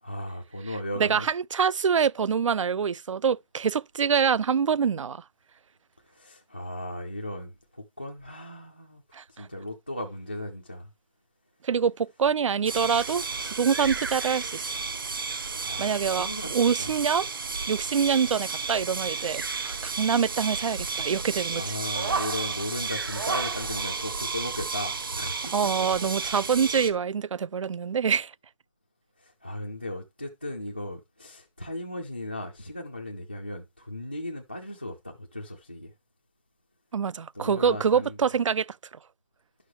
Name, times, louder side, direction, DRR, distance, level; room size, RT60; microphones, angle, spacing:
voice 1, 0.0-1.3 6.0-10.9 15.6-16.9 21.5-26.1 29.2-35.9 37.3-38.3, left 1 dB, 15° left, 0.4 m, -37 dB
voice 2, 1.0-5.2 9.1-9.5 11.6-14.7 15.8-17.3 17.7-21.6 25.5-28.3 36.9-38.7, right 6 dB, 75° right, 0.4 m, -25 dB
sound 1, 12.6-26.9, right 4 dB, 45° right, 0.9 m, -32 dB
11.0 x 6.4 x 3.1 m
hypercardioid pair, 180°, 16 cm